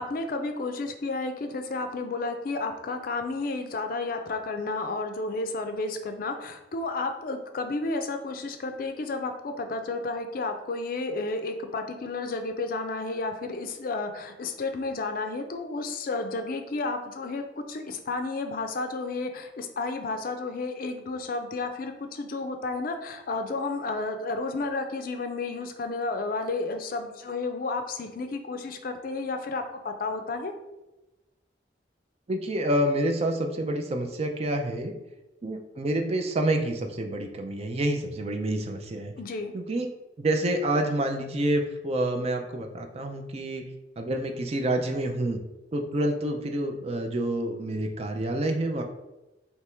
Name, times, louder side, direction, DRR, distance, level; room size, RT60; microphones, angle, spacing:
voice 1, 0.0-30.5 39.2-39.5, left 3 dB, 50° left, 6 dB, 0.4 m, -32 dB
voice 2, 32.3-34.9 35.4-39.1 39.5-39.9 40.2-43.6 44.0-45.4 45.7-48.8, right 1 dB, 35° right, 4 dB, 0.4 m, -28 dB
3.4 x 2.9 x 4.3 m, 1.0 s
head